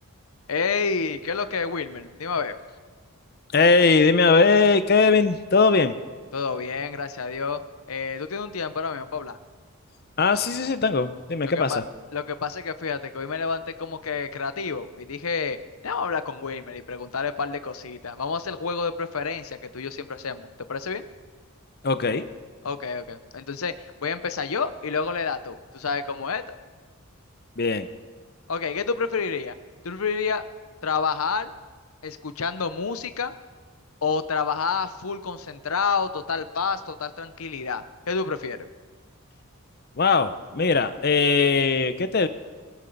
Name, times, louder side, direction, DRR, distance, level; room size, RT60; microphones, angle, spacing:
voice 1, 0.5-2.5 6.3-7.6 7.9-9.4 11.5-11.8 12.1-15.6 15.8-21.1 22.6-26.4 28.5-29.6 29.8-30.4 30.8-31.5 32.0-33.3 34.0-38.6, left 5 dB, 80° left, 11 dB, 0.8 m, -29 dB
voice 2, 3.5-5.9 10.2-11.8 21.8-22.3 27.6-27.9 40.0-42.3, left 4 dB, 45° left, 11 dB, 0.7 m, -20 dB
21.0 x 13.5 x 4.1 m, 1.4 s
head